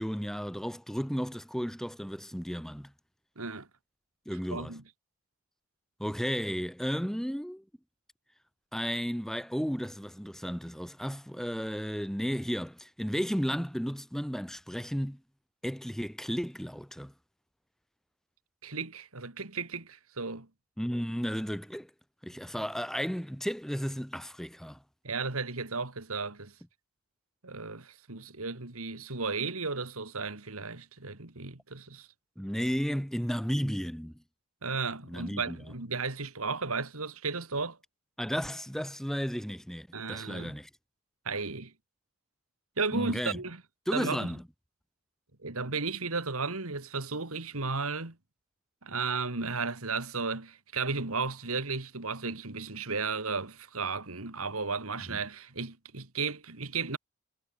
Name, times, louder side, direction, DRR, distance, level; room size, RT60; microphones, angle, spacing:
voice 1, 0.0-2.9 4.2-4.7 6.0-7.6 8.7-15.2 15.6-17.1 20.8-21.9 22.2-24.8 32.4-34.1 35.1-35.6 38.2-40.7 42.9-43.4 43.9-44.4 55.1-55.2, equal, ahead, 3.1 m, -33 dB
voice 2, 3.4-3.7 4.5-4.8 18.6-20.5 25.0-26.5 27.4-32.1 34.6-37.8 39.9-40.6 41.2-41.7 42.8-43.6 43.9-44.3 45.4-48.2 48.8-57.0, right 4 dB, 80° right, 2.5 m, -34 dB
head